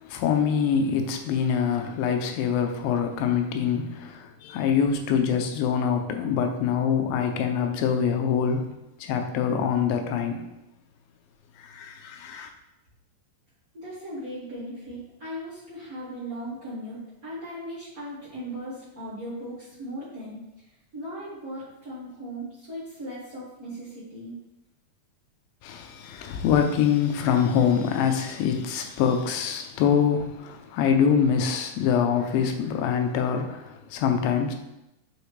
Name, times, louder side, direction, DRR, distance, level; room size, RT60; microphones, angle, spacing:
voice 1, 0.0-8.7 9.0-10.5 11.6-12.5 25.6-34.5, left 7 dB, 90° left, 5 dB, 2.5 m, -24 dB
voice 2, 13.7-20.4 20.9-24.3, equal, 75° right, -9 dB, 0.8 m, -38 dB
8.2 x 4.3 x 3.2 m, 0.91 s
omnidirectional pair, 4.0 m